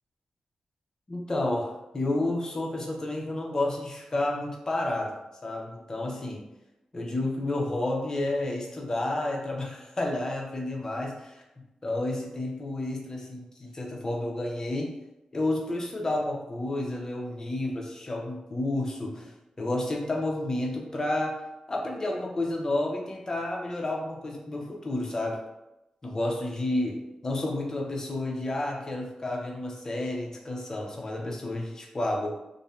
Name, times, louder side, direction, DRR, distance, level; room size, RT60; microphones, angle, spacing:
voice 1, 1.1-5.1 5.4-6.4 6.9-11.4 11.8-14.9 15.3-21.4 21.7-25.4 26.0-32.3, left 2 dB, 30° left, 0 dB, 0.5 m, -30 dB
2.5 x 2.0 x 2.9 m, 0.94 s
wide cardioid pair, 115°, 2 cm